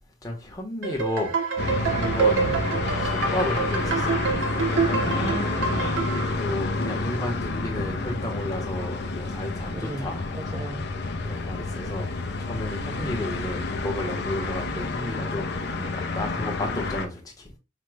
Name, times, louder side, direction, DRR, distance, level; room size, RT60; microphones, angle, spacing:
voice 1, 0.2-1.4 1.9-2.5 3.0-4.2 6.0-10.2 11.2-17.5, left 1 dB, 20° left, 0.9 m, -33 dB
sound 1, 0.8-6.3, right 4 dB, 75° right, 0.8 m, -27 dB
sound 2, 1.6-17.1, left 2 dB, 55° left, 0.5 m, -29 dB
voice 2, 5.0-6.1 9.7-10.9 12.9-13.2 15.8-15.9, right 2 dB, 20° right, 0.3 m, -36 dB
5.0 x 2.1 x 3.2 m
head